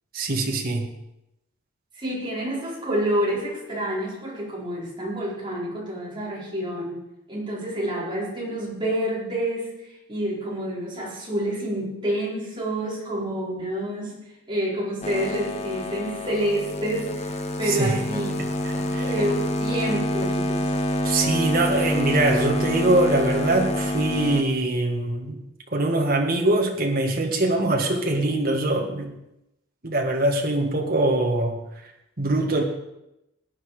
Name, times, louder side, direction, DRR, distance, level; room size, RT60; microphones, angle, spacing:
voice 1, 0.1-0.9 17.7-18.0 18.9-19.1 21.0-25.4 25.7-29.1 29.8-31.6 32.2-32.6, right 2 dB, 45° right, 1 dB, 1.8 m, -23 dB
voice 2, 2.0-7.0 7.3-9.7 10.1-14.2 14.5-18.4 18.7-20.7, right 1 dB, 20° right, -6 dB, 4.6 m, -28 dB
sound 1, 15.0-24.4, left 1 dB, 30° left, 1.1 m, -27 dB
18.0 x 9.6 x 5.0 m, 0.88 s
head